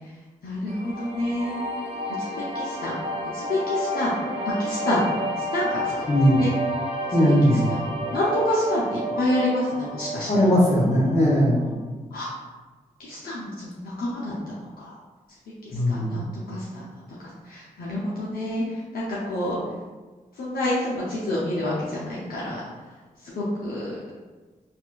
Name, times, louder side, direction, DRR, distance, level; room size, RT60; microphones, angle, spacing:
voice 1, 0.4-1.6 2.2-2.9 3.3-4.1 4.6-5.0 5.4-5.8 6.4-6.5 7.1-7.3 7.7-7.8 8.1-10.3 11.6-11.7 12.1-12.3 13.0-14.9 15.7-16.8 17.2-19.6 20.4-22.6 23.3-24.0, left 1 dB, 75° left, -7 dB, 0.7 m, -28 dB
sound 1, 0.7-11.7, equal, 40° right, 0.7 m, -31 dB
voice 2, 6.1-6.4 7.1-7.6 10.3-11.6 15.7-16.1, equal, 45° left, -4 dB, 1.2 m, -19 dB
4.1 x 2.5 x 2.3 m, 1.3 s
supercardioid pair, 45°, 15 cm